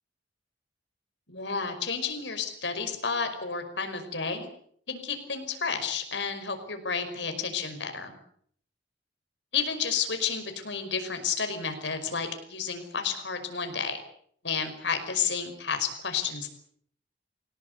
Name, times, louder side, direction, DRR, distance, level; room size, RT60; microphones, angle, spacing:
voice 1, 1.3-4.5 4.9-8.2 9.5-14.0 14.4-16.5, left 6 dB, 70° left, 7 dB, 5.5 m, -31 dB
25.5 x 18.0 x 8.3 m, 0.64 s
head